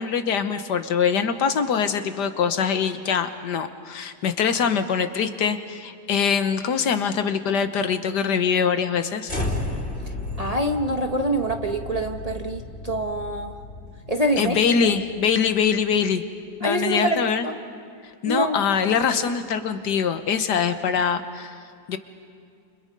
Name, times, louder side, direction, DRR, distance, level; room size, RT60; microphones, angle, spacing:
voice 1, 0.0-9.3 14.4-16.2 16.6-17.5 18.2-21.6 21.9-22.0, left 7 dB, 75° left, 9 dB, 1.7 m, -23 dB
sound 1, 9.3-15.6, left 2 dB, 35° left, 3.8 m, -33 dB
voice 2, 10.4-13.5 14.1-14.6 16.6-17.6 18.2-18.6, right 1 dB, 25° right, 3 dB, 1.0 m, -25 dB
30.0 x 29.0 x 5.4 m, 2.3 s
omnidirectional pair, 1.8 m